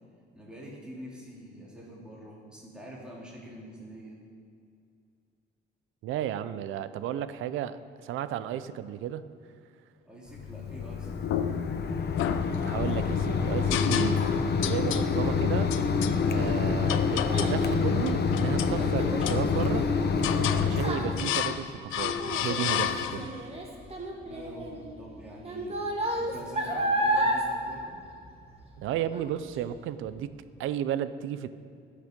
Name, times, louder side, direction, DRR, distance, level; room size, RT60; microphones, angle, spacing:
voice 1, 0.3-4.2 10.0-11.4 24.2-25.8 26.2-28.0, equal, 5° right, -5 dB, 3.0 m, -45 dB
voice 2, 6.0-9.2 12.6-14.2 14.6-15.7 16.3-19.9 20.6-23.3 28.8-30.3 30.6-31.5, right 10 dB, 85° right, 13 dB, 0.6 m, -33 dB
Mechanisms, 10.3-21.3, left 5 dB, 55° left, 1.0 m, -27 dB
sound 1, 11.2-11.8 12.2-13.0 13.7-14.3 14.6-15.1 15.7-16.2 16.9-17.6 18.0-18.8 19.2-19.8 20.2-20.7 21.2-21.6 21.9-23.4, left 10 dB, 90° left, 0.7 m, -31 dB
Child speech kid speaking, 16.8-28.8 29.1-29.6 30.1-30.2, right 1 dB, 30° right, 2.1 m, -33 dB
19.0 x 6.7 x 5.2 m, 2.4 s
cardioid pair, 90°, 20 cm